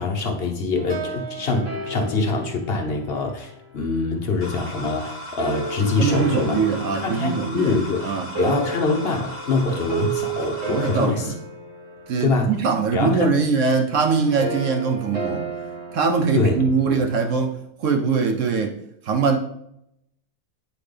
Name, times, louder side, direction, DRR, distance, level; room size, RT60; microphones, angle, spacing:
voice 1, 0.0-6.6 6.9-11.3 12.2-12.6 12.9-13.5 16.3-16.6 16.9-17.0, left 3 dB, 55° left, 0.6 m, -24 dB
sound 1, 0.8-4.1 5.4-17.4, right 3 dB, 45° right, 1.6 m, -33 dB
sound 2, 4.4-11.1, equal, 30° left, 1.1 m, -37 dB
voice 2, 6.0-8.3 10.7-11.3 12.1-15.5 15.9-18.8 19.1-19.4, right 5 dB, 70° right, 0.7 m, -22 dB
9.1 x 3.9 x 3.3 m
omnidirectional pair, 1.9 m